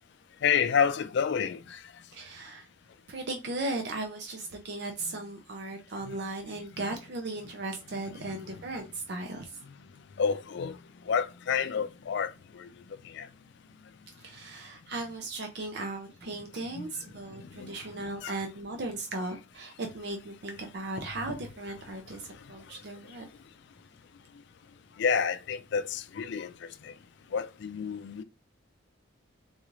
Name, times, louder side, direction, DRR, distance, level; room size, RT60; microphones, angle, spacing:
voice 1, 0.4-1.6 8.2-8.4 10.2-10.7 11.1-12.3 13.2-13.3 16.8-16.9 17.6-17.7 18.2-18.3 25.0-26.5 27.3-28.2, left 6 dB, 60° left, 0.4 m, -28 dB
voice 2, 2.1-2.7 3.1-9.6 14.2-23.3, right 2 dB, 60° right, 0.6 m, -37 dB
3.9 x 2.4 x 3.1 m
head